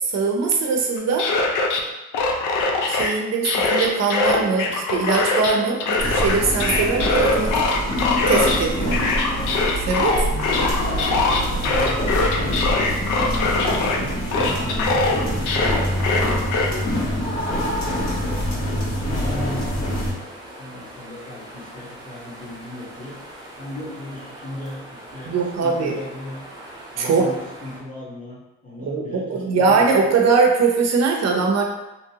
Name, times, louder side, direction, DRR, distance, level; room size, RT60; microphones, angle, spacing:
voice 1, 0.0-1.3 2.9-7.6 8.3-9.0 9.8-10.3 11.5-11.7 25.3-26.0 27.0-27.3 28.8-31.6, right 4 dB, 60° right, 1 dB, 0.7 m, -21 dB
sound 1, 1.0-1.8 2.1-3.1 3.4-5.5 5.8-8.6 8.9-14.0 14.3-16.7, left 3 dB, 90° left, 0.5 m, -22 dB
sound 2, 6.0-20.1, equal, 60° left, 1.4 m, -25 dB
voice 2, 10.0-10.7 11.3-12.7 13.4-17.7 18.2-23.2 23.6-26.4 26.9-30.2, left 2 dB, 25° left, -6 dB, 1.2 m, -37 dB
sound 3, 15.3-27.8, right 1 dB, 15° right, 1.0 m, -42 dB
2.9 x 2.5 x 2.8 m, 1.0 s
cardioid pair, 90°, 30 cm